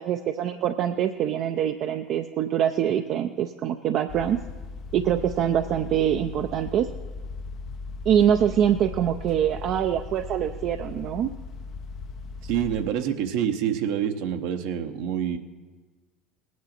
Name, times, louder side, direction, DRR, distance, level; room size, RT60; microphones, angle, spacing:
voice 1, 0.0-4.4 4.9-6.9 8.1-11.3, right 10 dB, 55° right, 7 dB, 0.5 m, -24 dB
sound 1, 4.1-12.9, left 4 dB, 55° left, 0.6 m, -38 dB
voice 2, 12.4-15.4, right 9 dB, 70° right, 7 dB, 0.9 m, -27 dB
19.0 x 9.3 x 4.3 m, 1.3 s
hypercardioid pair, 85°, 0 cm